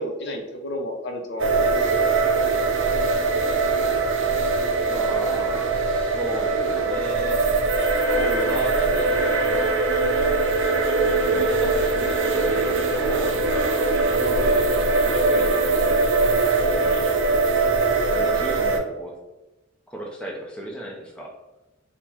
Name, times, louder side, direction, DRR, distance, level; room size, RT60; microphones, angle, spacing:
voice 1, 0.0-2.0 8.1-8.6 14.1-14.4, left 1 dB, 55° left, 3 dB, 0.6 m, -32 dB
sound 1, 1.4-18.8, right 3 dB, 60° right, 0.5 m, -21 dB
voice 2, 4.9-7.4 8.4-9.7 11.0-17.2 18.1-19.2 19.9-21.4, right 1 dB, 5° left, -2 dB, 0.6 m, -36 dB
3.8 x 2.2 x 4.3 m, 1.0 s
head